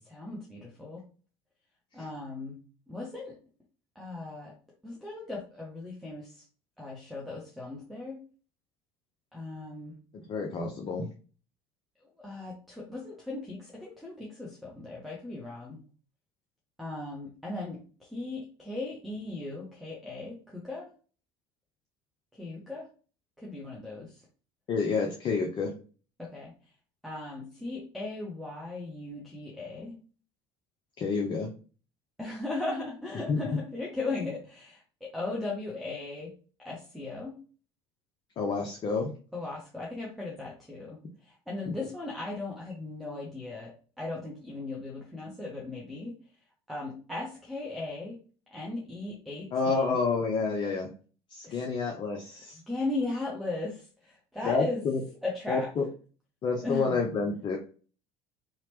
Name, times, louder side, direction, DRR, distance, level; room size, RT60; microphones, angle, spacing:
voice 1, 0.1-1.0 1.9-2.6 2.9-3.4 3.9-4.5 4.8-6.4 6.8-8.2 9.3-9.9 12.2-15.8 16.8-20.9 22.3-22.9 23.4-24.2 26.2-26.5 27.0-30.0 32.2-36.3 36.6-37.3 39.3-41.0 41.2-43.7 44.0-46.1 46.7-48.2 48.5-50.0 51.4-51.6 52.7-54.8 55.2-55.7 56.6-57.0, left 2 dB, ahead, -3 dB, 0.8 m, -37 dB
voice 2, 10.1-11.1 24.7-25.7 31.0-31.5 33.3-33.5 38.4-39.1 41.7-41.8 49.5-50.9 51.3-52.6 54.4-55.0 55.5-55.8 56.4-57.6, left 4 dB, 35° left, 2 dB, 0.5 m, -29 dB
2.8 x 2.0 x 3.0 m, 0.38 s
figure-of-eight pair, 65°, 14 cm